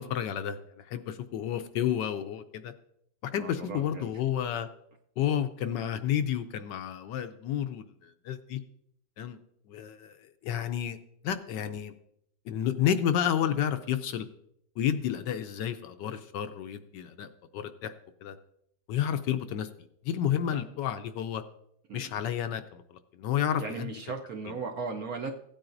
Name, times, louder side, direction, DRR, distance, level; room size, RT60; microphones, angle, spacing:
voice 1, 0.0-2.7 3.2-4.7 5.2-8.6 9.2-9.4 9.7-11.0 11.2-11.9 12.5-14.3 14.8-17.9 18.2-18.4 18.9-19.7 20.0-21.4 21.9-23.9, left 9 dB, 75° left, 9 dB, 1.1 m, -31 dB
voice 2, 3.4-4.1 20.5-20.6 21.9-22.1 23.6-25.3, right 4 dB, 65° right, 3 dB, 0.9 m, -37 dB
16.0 x 8.8 x 2.6 m, 0.73 s
omnidirectional pair, 2.1 m